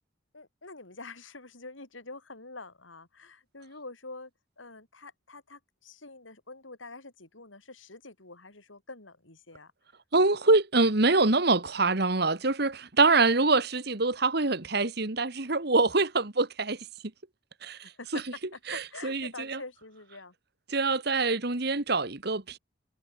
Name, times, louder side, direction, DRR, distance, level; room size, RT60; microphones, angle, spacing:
voice 1, 0.3-4.3 4.6-9.7 17.7-18.2 18.5-20.3, left 3 dB, 90° left, 4.8 m, -46 dB
voice 2, 10.1-16.8 17.6-17.8 18.1-18.2 18.7-19.6 20.7-22.6, right 3 dB, 55° right, 1.8 m, -25 dB
head